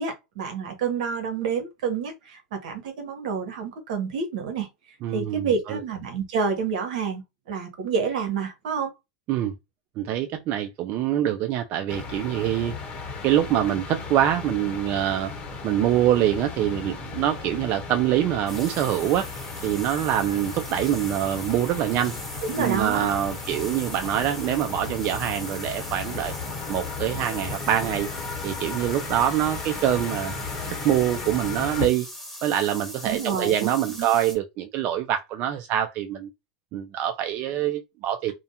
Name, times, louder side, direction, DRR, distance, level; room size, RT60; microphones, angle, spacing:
voice 1, 0.0-4.7 5.1-8.9 22.4-23.2 33.0-34.1, right 5 dB, 75° right, 0.9 m, -28 dB
voice 2, 5.0-5.8 9.3-9.5 10.0-12.7 13.2-15.3 15.6-19.3 19.6-22.1 22.6-26.3 26.7-28.1 28.4-30.4 30.7-32.1 32.4-36.3 36.7-38.3, right 11 dB, 45° right, 0.3 m, -25 dB
sound 1, 11.9-31.9, left 4 dB, 30° left, 0.9 m, -35 dB
sound 2, 18.5-34.3, equal, ahead, 1.2 m, -40 dB
2.4 x 2.1 x 2.7 m
supercardioid pair, 120°, 4 cm